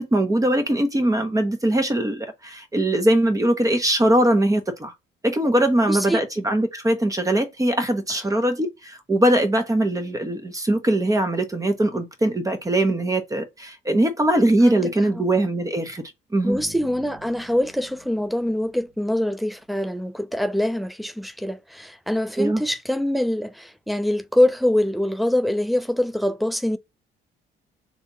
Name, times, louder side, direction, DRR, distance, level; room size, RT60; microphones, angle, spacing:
voice 1, 0.0-4.9 5.2-16.0 16.3-16.6 22.4-22.6, right 1 dB, 15° right, 1.0 m, -21 dB
voice 2, 5.8-6.3 14.6-14.9 15.2-15.3 16.4-26.8, left 1 dB, ahead, 0.4 m, -24 dB
sound 1, 16.5-19.5, right 2 dB, 60° right, 2.9 m, -47 dB
4.0 x 3.4 x 2.9 m
cardioid pair, 90°, 20 cm